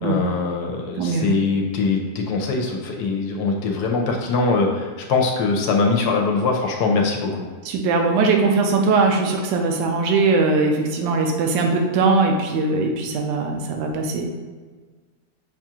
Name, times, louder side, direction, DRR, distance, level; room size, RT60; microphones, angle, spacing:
voice 1, 0.0-7.4, left 4 dB, 75° left, 2 dB, 1.1 m, -22 dB
voice 2, 1.0-1.3 7.6-14.2, right 3 dB, 85° right, 2 dB, 1.2 m, -20 dB
5.8 x 2.4 x 2.8 m, 1.4 s
omnidirectional pair, 1.8 m